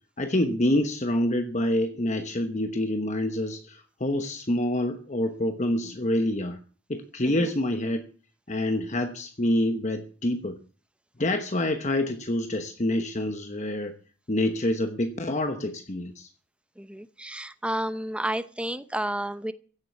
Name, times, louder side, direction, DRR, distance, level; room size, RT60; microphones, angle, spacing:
voice 1, 0.2-6.6 6.9-8.0 8.5-10.6 11.2-13.9 14.3-16.3, left 1 dB, 35° left, 7 dB, 1.1 m, -27 dB
voice 2, 16.8-19.5, right 1 dB, 5° right, 12 dB, 0.7 m, -31 dB
16.0 x 7.6 x 8.5 m, 0.41 s
head